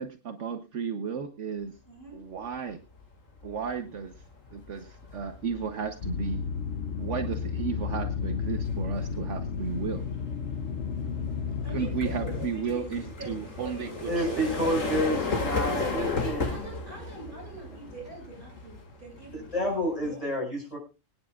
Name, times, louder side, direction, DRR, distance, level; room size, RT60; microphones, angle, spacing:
voice 1, 0.0-1.7 2.1-2.8 3.4-4.1 4.5-6.4 7.0-10.0 11.7-14.4, right 6 dB, 65° right, 7 dB, 1.2 m, -34 dB
voice 2, 1.8-2.2 11.6-14.8 15.8-20.3, right 2 dB, 40° right, -2 dB, 7.7 m, -44 dB
sound 1, 2.7-3.0 3.4-20.1, left 3 dB, 80° left, 2.5 m, -36 dB
sound 2, 6.0-12.5, left 6 dB, 65° left, 1.1 m, -32 dB
voice 3, 14.1-16.6 19.3-20.8, equal, 25° left, -1 dB, 5.9 m, -29 dB
24.5 x 9.8 x 2.4 m, 0.28 s
omnidirectional pair, 1.3 m